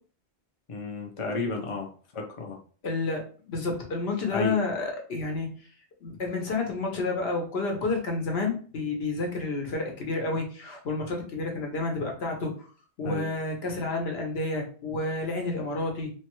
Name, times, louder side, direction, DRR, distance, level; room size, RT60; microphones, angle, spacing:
voice 1, 0.7-1.9 2.1-2.6 4.3-4.5 13.0-13.2, left 3 dB, 40° left, 1 dB, 0.5 m, -32 dB
voice 2, 2.8-5.5 6.0-12.7 13.0-16.1, left 3 dB, 70° left, 1 dB, 1.0 m, -30 dB
3.3 x 2.2 x 2.9 m, 0.41 s
omnidirectional pair, 1.1 m